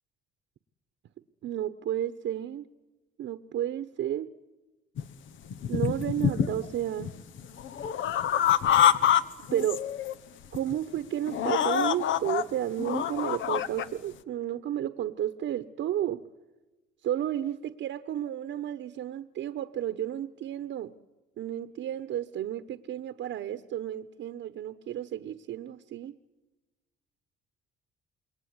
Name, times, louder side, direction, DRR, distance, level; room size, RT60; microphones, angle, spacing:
voice 1, 1.4-2.6 3.2-4.3 5.7-7.1 8.8-9.0 9.5-9.8 10.5-16.2 17.0-20.9 21.4-26.1, right 11 dB, 75° right, 12 dB, 1.1 m, -32 dB
sound 1, 5.0-5.1 5.5-6.7 7.0-9.2 9.5-10.1 10.5-10.7 11.3-12.4 12.8-13.8, left 9 dB, 75° left, 1.3 m, -26 dB
28.0 x 22.0 x 9.7 m, 1.1 s
cardioid pair, 90°, 20 cm